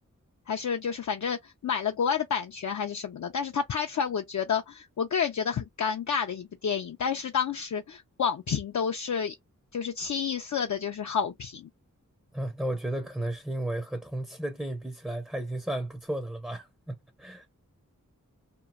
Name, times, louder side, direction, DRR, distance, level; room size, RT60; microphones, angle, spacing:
voice 1, 0.5-9.4 9.7-11.7, left 7 dB, 60° left, 0.5 m, -30 dB
voice 2, 12.3-17.5, right 1 dB, 5° right, 0.5 m, -33 dB
3.0 x 2.4 x 2.3 m
wide cardioid pair, 85°, 33 cm